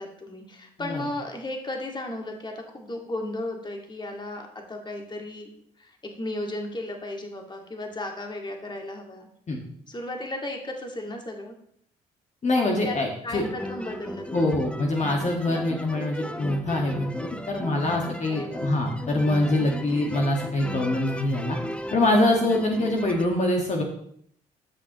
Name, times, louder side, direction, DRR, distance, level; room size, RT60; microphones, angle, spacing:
voice 1, 0.0-5.5 5.8-9.3 9.9-11.5 12.8-13.0 13.2-14.6 18.3-18.7, left 1 dB, 25° left, 2 dB, 2.0 m, -35 dB
voice 2, 12.4-13.4 14.3-21.6 21.9-23.8, left 1 dB, 40° left, 0 dB, 1.7 m, -24 dB
sound 1, 13.3-23.3, left 1 dB, 5° left, 0.7 m, -36 dB
13.0 x 6.3 x 3.0 m, 0.66 s
supercardioid pair, 65°, 17 cm